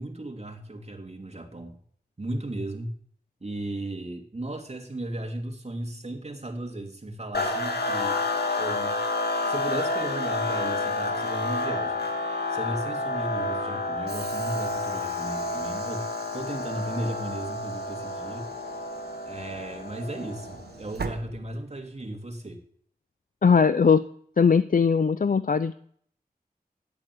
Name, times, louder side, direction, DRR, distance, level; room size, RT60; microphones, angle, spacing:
voice 1, 0.0-1.8 2.2-3.0 3.4-8.2 8.6-9.0 9.5-12.1 12.5-16.1 16.3-18.5 19.3-22.6, right 1 dB, 40° right, 3 dB, 3.0 m, -35 dB
sound 1, 7.3-20.7, left 2 dB, 80° left, 2.3 m, -30 dB
Train / Sliding door, 14.1-22.0, right 5 dB, 90° right, 1.3 m, -43 dB
voice 2, 23.4-24.0 24.4-25.7, left 5 dB, 60° left, 13 dB, 0.6 m, -20 dB
15.5 x 8.8 x 8.6 m, 0.62 s
cardioid pair, 45°, 16 cm